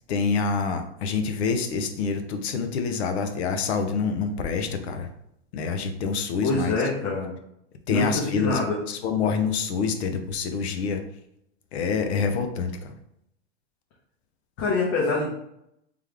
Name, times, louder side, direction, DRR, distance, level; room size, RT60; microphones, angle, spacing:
voice 1, 0.1-5.1 5.5-6.7 7.9-8.6 8.9-11.0 11.7-13.0, left 5 dB, 65° left, 6 dB, 0.7 m, -26 dB
voice 2, 6.4-7.3 7.9-8.8 14.6-15.4, left 3 dB, 45° left, -5 dB, 1.2 m, -25 dB
3.5 x 3.3 x 3.5 m, 0.77 s
hypercardioid pair, 125°, 34 cm